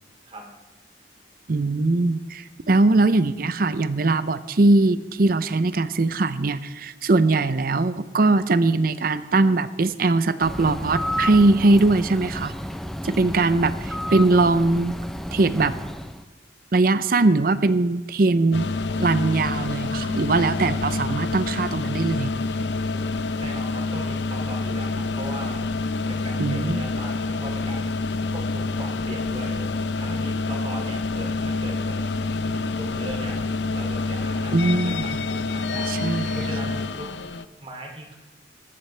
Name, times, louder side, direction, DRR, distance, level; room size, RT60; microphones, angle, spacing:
voice 1, 1.5-12.5 13.0-14.9 15.3-15.8 16.7-18.7 19.0-22.3 26.4-26.8 34.5-35.2 35.9-36.4, right 2 dB, 55° right, 13 dB, 0.6 m, -21 dB
Bird, 10.4-16.2, equal, ahead, 0.5 m, -31 dB
sound 1, 18.5-37.4, left 3 dB, 80° left, 0.6 m, -27 dB
voice 2, 23.4-25.6 26.1-28.0 28.3-29.6 30.0-33.4 33.7-37.1 37.6-38.2, right 1 dB, 35° right, 1 dB, 2.7 m, -39 dB
19.0 x 14.5 x 3.3 m, 1.2 s
head